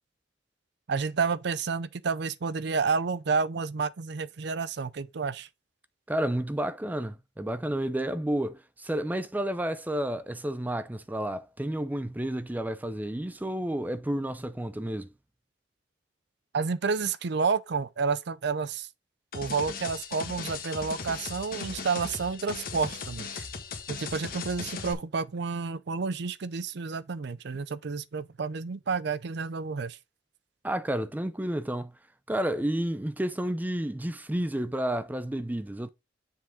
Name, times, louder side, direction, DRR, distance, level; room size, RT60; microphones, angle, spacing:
voice 1, 0.9-5.5 16.5-18.9 19.3-23.5 23.9-30.0, right 5 dB, 65° right, 0.5 m, -30 dB
voice 2, 6.1-15.1 30.6-31.9 32.3-35.9, right 1 dB, 10° right, 0.4 m, -31 dB
sound 1, 19.3-24.9, left 5 dB, 55° left, 1.6 m, -38 dB
7.3 x 5.7 x 3.6 m
head